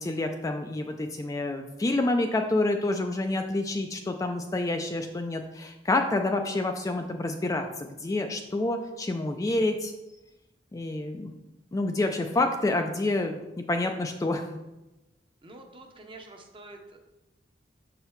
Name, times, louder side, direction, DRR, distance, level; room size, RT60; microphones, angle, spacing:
voice 1, 0.0-9.9 10.7-11.3 11.7-13.4 13.7-14.4, left 2 dB, 20° left, 4 dB, 0.3 m, -28 dB
voice 2, 15.4-17.0, right 2 dB, 30° right, 4 dB, 0.7 m, -47 dB
6.4 x 4.8 x 3.1 m, 0.99 s
head